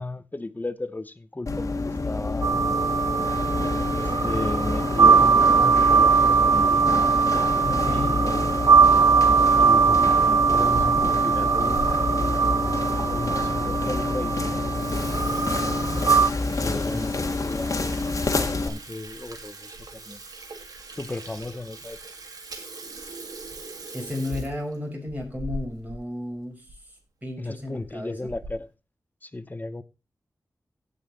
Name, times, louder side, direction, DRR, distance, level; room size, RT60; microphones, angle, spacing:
voice 1, 0.0-2.7 4.0-6.9 7.9-8.5 9.5-14.3 16.6-17.7 18.2-19.8 20.1-20.2 21.0-22.0 27.4-28.7 29.2-29.8, left 2 dB, 30° left, 1.0 m, -35 dB
sound 1, 1.5-18.7, left 3 dB, 60° left, 1.6 m, -28 dB
sound 2, 2.4-16.3, right 5 dB, 60° right, 0.5 m, -21 dB
voice 2, 7.6-8.2 16.5-17.2 23.9-28.3, left 2 dB, 25° right, 5.5 m, -34 dB
Water tap faucet / Sink (filling or washing), 10.4-11.9 12.4-12.5 13.2-13.3 13.6-13.7 14.1-14.3 14.6-26.0 26.3-26.4 26.7-26.8 27.6-27.9 28.3-28.7, right 2 dB, 85° right, 2.2 m, -40 dB
16.5 x 5.6 x 4.1 m
cardioid pair, 60°, 6 cm